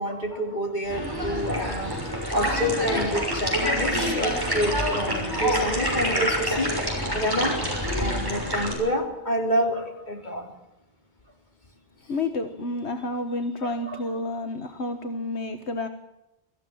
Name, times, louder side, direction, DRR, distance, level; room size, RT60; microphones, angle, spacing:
voice 1, 0.0-6.8 7.1-7.6 7.9-10.5, equal, 45° left, 2 dB, 3.8 m, -28 dB
sound 1, 0.9-8.7, equal, 20° right, 6.5 m, -27 dB
voice 2, 12.1-15.9, left 2 dB, 80° left, 6 dB, 1.7 m, -30 dB
25.0 x 15.0 x 7.4 m, 0.92 s
omnidirectional pair, 1.1 m